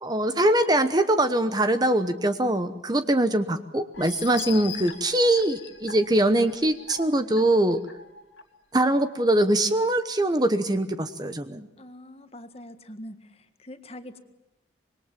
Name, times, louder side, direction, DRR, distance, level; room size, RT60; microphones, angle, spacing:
voice 1, 0.0-7.8 8.7-11.7, right 1 dB, 20° right, 10 dB, 1.0 m, -23 dB
sound 1, 3.9-8.4 8.9-9.0 9.4-9.5, left 8 dB, 80° left, 2.4 m, -41 dB
voice 2, 11.8-14.2, left 1 dB, 30° left, 8 dB, 1.7 m, -43 dB
26.0 x 21.5 x 7.6 m, 0.92 s
head